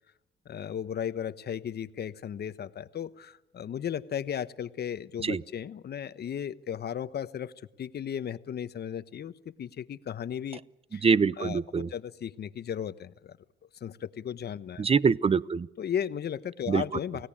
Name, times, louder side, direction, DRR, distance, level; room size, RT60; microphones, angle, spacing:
voice 1, 0.4-10.6 10.9-11.0 11.4-13.4 13.8-14.8 15.8-17.3, left 9 dB, 55° left, 14 dB, 1.1 m, -35 dB
voice 2, 11.0-11.9 14.8-15.7 16.7-16.8, right 5 dB, 30° right, 20 dB, 0.8 m, -24 dB
29.5 x 17.5 x 8.7 m, 0.92 s
cardioid pair, 90°, 20 cm